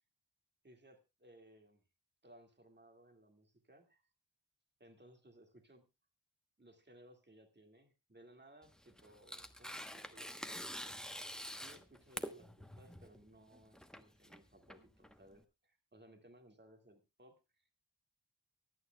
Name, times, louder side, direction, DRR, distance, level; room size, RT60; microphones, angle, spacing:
voice 1, 0.6-1.8 2.2-4.0 4.8-5.9 6.6-11.0 11.6-17.7, right 1 dB, 25° right, 4 dB, 2.2 m, -62 dB
Tearing, 8.6-15.4, equal, ahead, 1.0 m, -47 dB
24.0 x 9.3 x 2.3 m, 0.26 s
wide cardioid pair, 70°, 42 cm